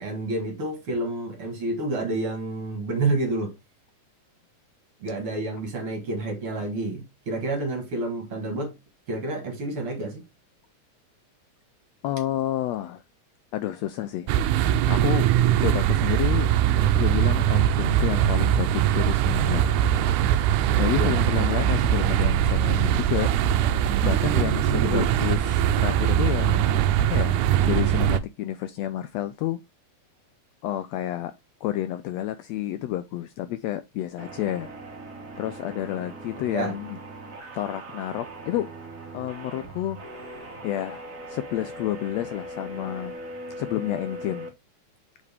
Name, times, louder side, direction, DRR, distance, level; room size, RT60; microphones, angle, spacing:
voice 1, 0.0-3.5 5.0-8.7 9.1-10.3 21.0-21.2 24.7-25.1 36.5-36.7, right 2 dB, 50° right, 2.3 m, -29 dB
voice 2, 12.0-13.0 13.5-14.3 14.9-15.3 15.6-16.5 16.8-19.7 20.0-20.2 20.8-23.3 24.0-29.6 30.6-31.3 31.6-34.7 35.4-37.0 37.5-38.7 39.1-43.1 43.6-44.5, left 13 dB, 80° left, 1.6 m, -30 dB
sound 1, 14.3-28.2, right 10 dB, 90° right, 2.1 m, -21 dB
sound 2, 34.2-44.5, right 1 dB, 35° right, 1.6 m, -40 dB
6.6 x 5.1 x 3.4 m
omnidirectional pair, 3.4 m